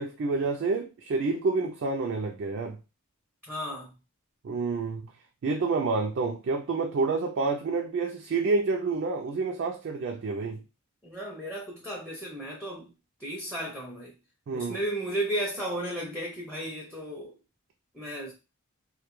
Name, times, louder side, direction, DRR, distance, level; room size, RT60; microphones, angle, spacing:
voice 1, 0.0-2.8 4.4-5.1 5.4-10.6 14.5-14.8, right 3 dB, 55° right, 0.3 m, -28 dB
voice 2, 3.5-4.0 11.0-12.9 13.2-14.2 14.5-17.4 17.9-18.3, right 1 dB, 5° left, 0.5 m, -34 dB
2.2 x 2.2 x 2.9 m
head